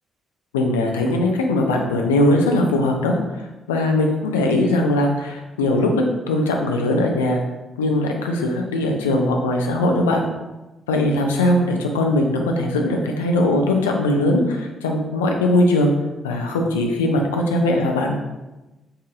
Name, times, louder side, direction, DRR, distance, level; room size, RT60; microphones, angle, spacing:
voice 1, 0.5-3.2 3.7-5.9 6.3-7.4 7.8-10.2 10.9-15.9 16.2-18.2, left 1 dB, 80° left, 1 dB, 0.4 m, -20 dB
5.3 x 2.6 x 2.5 m, 1.1 s
figure-of-eight pair, 40°, 0 cm